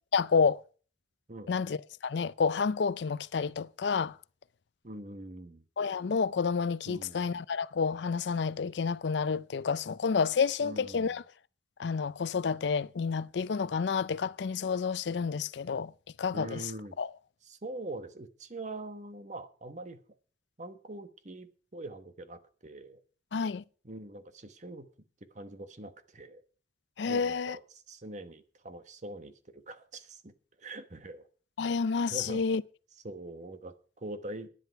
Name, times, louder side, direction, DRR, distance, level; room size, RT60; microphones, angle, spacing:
voice 1, 0.1-0.6 1.5-4.1 5.8-11.2 11.8-15.9 16.2-16.6 17.0-17.1 23.3-23.6 27.0-27.6 31.6-32.6, left 5 dB, 80° left, 0.5 m, -29 dB
voice 2, 4.8-5.6 6.9-7.2 10.6-11.1 16.3-17.0 17.4-20.0 20.6-23.0 23.8-24.9 25.3-26.4 27.1-30.3 30.6-31.3 31.7-31.8 32.1-32.4 33.0-34.5, right 2 dB, 40° right, 1.1 m, -43 dB
11.5 x 10.0 x 5.7 m
head